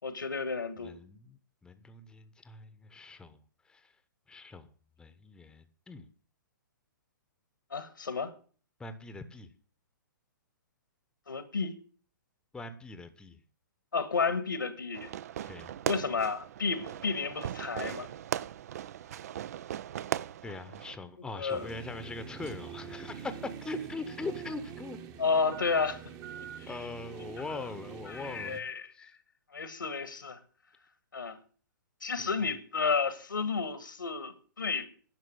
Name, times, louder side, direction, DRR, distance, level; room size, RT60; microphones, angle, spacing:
voice 1, 0.0-0.9 7.7-8.3 11.3-11.7 13.9-15.1 15.9-18.1 21.4-21.7 25.2-26.1 26.6-26.8 28.1-29.1 29.5-30.4 31.1-31.4 32.0-34.9, left 5 dB, 75° left, 1.8 m, -32 dB
voice 2, 0.8-3.4 3.6-3.9 4.3-4.7 5.0-6.1 8.8-9.5 12.5-13.4 15.5-15.7 20.4-25.0 26.7-28.6 28.9-29.1 32.2-32.3, left 3 dB, 5° left, 1.0 m, -42 dB
Fireworks, 14.9-21.0, right 11 dB, 50° right, 0.5 m, -38 dB
sound 1, 21.5-28.6, right 9 dB, 30° right, 1.2 m, -44 dB
10.5 x 6.7 x 8.9 m
figure-of-eight pair, 120°, 11 cm